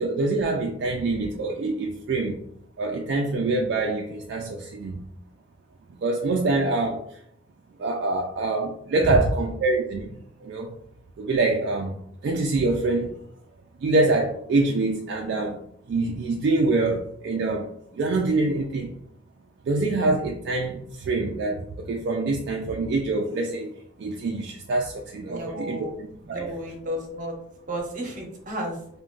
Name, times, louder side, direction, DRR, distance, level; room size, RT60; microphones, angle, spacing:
voice 1, 0.0-2.4 2.8-5.0 5.9-7.2 7.8-10.2 10.4-10.7 11.2-11.9 12.2-13.1 13.8-15.6 15.9-18.9 19.7-23.7 24.0-26.5, right 2 dB, 65° right, 1 dB, 0.3 m, -25 dB
voice 2, 25.3-25.9 26.3-27.4 27.7-28.8, right 1 dB, 45° right, 1 dB, 0.7 m, -32 dB
2.4 x 2.1 x 3.7 m, 0.70 s
head